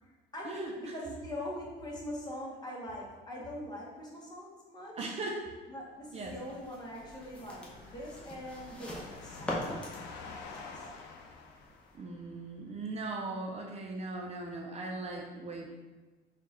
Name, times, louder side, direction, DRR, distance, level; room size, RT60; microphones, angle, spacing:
voice 1, 0.0-5.2 5.7-9.7 10.2-10.9, left 1 dB, 25° left, -4 dB, 1.1 m, -43 dB
voice 2, 5.0-5.4 6.1-6.3 11.9-15.7, right 2 dB, 40° right, 0 dB, 0.6 m, -39 dB
sound 1, 6.0-12.3, left 4 dB, 80° left, 0.6 m, -49 dB
sound 2, 6.1-11.9, left 1 dB, 5° left, 0.8 m, -43 dB
3.8 x 2.5 x 4.1 m, 1.3 s
cardioid pair, 110°, 17 cm